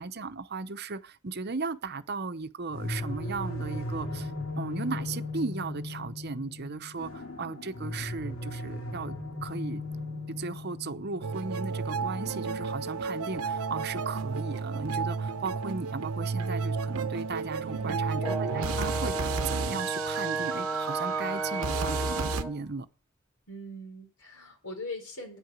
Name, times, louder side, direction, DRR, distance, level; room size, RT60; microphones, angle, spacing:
voice 1, 0.0-4.3 4.6-9.2 9.4-9.8 10.3-22.9, right 4 dB, 50° right, 0.8 m, -36 dB
sound 1, 2.7-15.5, left 2 dB, 70° left, 2.4 m, -38 dB
sound 2, 11.2-22.4, right 4 dB, 85° right, 0.8 m, -32 dB
voice 2, 17.7-18.1 23.5-25.4, left 1 dB, 85° left, 4.5 m, -41 dB
Brass instrument, 18.2-22.6, right 2 dB, 10° left, 2.5 m, -33 dB
9.8 x 8.0 x 8.1 m
head